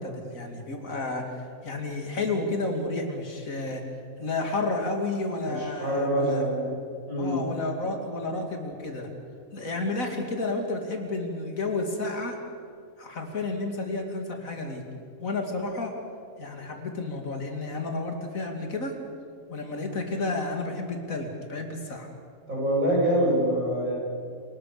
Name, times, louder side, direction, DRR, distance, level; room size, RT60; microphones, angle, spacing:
voice 1, 0.0-3.8 4.2-6.5 7.2-9.1 9.5-12.4 13.0-14.8 15.2-15.9 16.4-18.9 19.5-22.1, left 2 dB, 75° left, 3 dB, 3.1 m, -31 dB
voice 2, 5.4-6.8 7.1-7.4 22.5-23.9, right 1 dB, 75° right, -4 dB, 8.3 m, -25 dB
27.5 x 19.0 x 6.8 m, 2.3 s
omnidirectional pair, 1.4 m